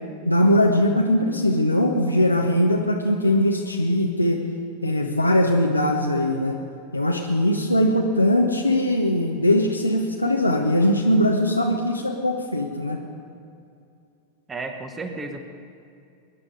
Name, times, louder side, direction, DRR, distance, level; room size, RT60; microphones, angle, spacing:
voice 1, 0.3-4.4 4.8-6.6 6.9-13.0, left 1 dB, 85° left, 0 dB, 1.1 m, -20 dB
voice 2, 14.5-15.4, right 3 dB, 15° right, 6 dB, 1.5 m, -32 dB
22.5 x 10.5 x 5.1 m, 2.5 s
figure-of-eight pair, 90°, 0 cm